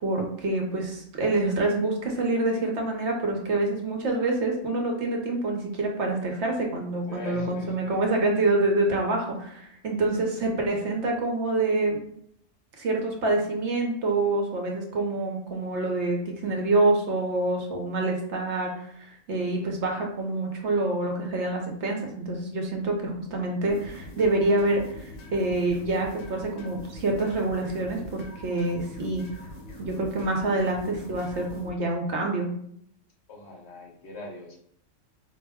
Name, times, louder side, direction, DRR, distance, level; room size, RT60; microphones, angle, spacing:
voice 1, 0.0-12.0 12.8-29.2 29.8-32.5, right 2 dB, 65° right, 1 dB, 1.0 m, -26 dB
voice 2, 7.0-8.0 33.3-34.6, left 1 dB, 60° left, -1 dB, 1.0 m, -41 dB
sound 1, 23.7-31.7, left 1 dB, 90° left, 1.2 m, -43 dB
4.6 x 2.1 x 3.4 m, 0.69 s
omnidirectional pair, 1.3 m